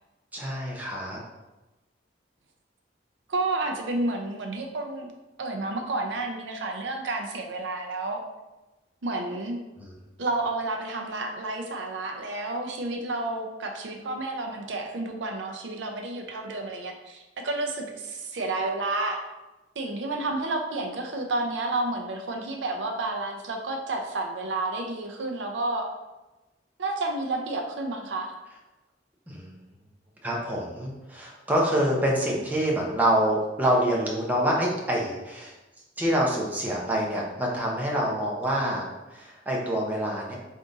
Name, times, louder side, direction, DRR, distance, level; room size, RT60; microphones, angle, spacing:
voice 1, 0.3-1.2 9.8-9.9 29.3-29.5 30.2-35.5 36.0-38.8 39.1-40.3, right 1 dB, 10° right, -3 dB, 0.6 m, -26 dB
voice 2, 3.3-5.1 5.4-8.2 9.0-9.6 10.2-19.2 19.8-25.9 26.8-28.3, right 2 dB, 75° right, 3 dB, 0.5 m, -30 dB
3.6 x 2.6 x 3.8 m, 1.1 s
head